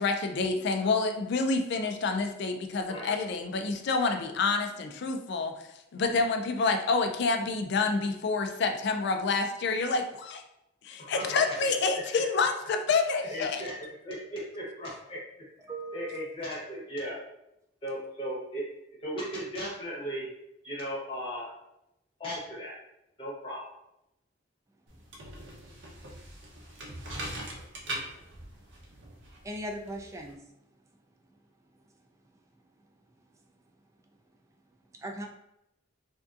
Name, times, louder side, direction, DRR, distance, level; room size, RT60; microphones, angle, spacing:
voice 1, 0.0-5.5 5.9-10.4 10.8-13.6, left 4 dB, 60° left, 5 dB, 0.4 m, -28 dB
voice 2, 11.0-11.7 11.9-12.0 13.3-15.2 15.6-15.7 15.9-17.2 17.8-18.6 19.0-20.3 20.6-21.5 22.2-22.8 23.2-23.6, equal, 30° left, -6 dB, 0.9 m, -37 dB
voice 3, 15.6-16.2 29.4-30.4 35.0-35.3, right 1 dB, 15° right, 2 dB, 0.3 m, -38 dB
sound 1, 24.9-30.3, right 1 dB, 65° right, 0.7 m, -41 dB
3.4 x 2.6 x 2.4 m, 0.85 s
head